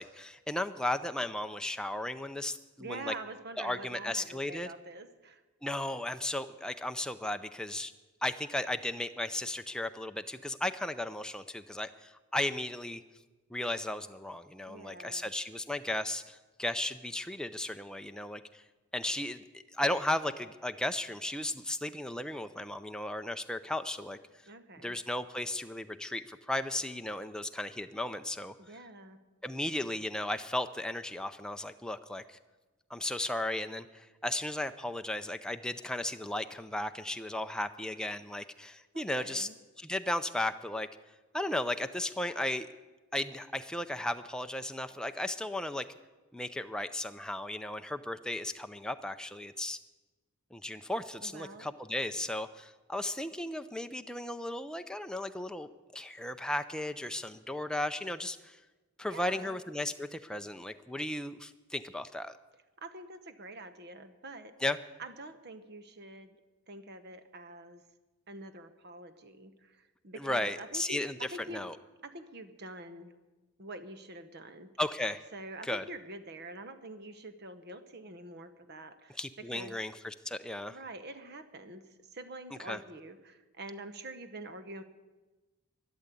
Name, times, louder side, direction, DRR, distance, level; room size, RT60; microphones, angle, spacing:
voice 1, 0.0-3.1 3.6-4.7 5.6-7.9 8.2-13.0 13.5-18.6 18.9-24.2 24.8-28.5 29.4-32.4 32.9-39.5 39.8-40.9 41.3-42.7 43.1-45.9 46.3-49.8 50.5-58.6 59.0-62.4 64.6-64.8 70.2-71.2 71.5-71.8 74.8-75.2 75.6-75.8 79.2-80.8 82.7-82.8, left 1 dB, 5° left, 8 dB, 0.5 m, -35 dB
voice 2, 2.8-5.4 14.7-15.3 24.4-25.0 28.6-29.2 38.9-39.5 51.2-51.8 59.1-59.6 62.8-64.6 65.0-66.4 66.7-67.8 68.3-71.7 72.0-73.1 73.6-74.7 75.3-79.8 80.7-84.8, right 2 dB, 45° right, 11 dB, 1.0 m, -46 dB
12.5 x 11.5 x 8.3 m, 1.2 s
head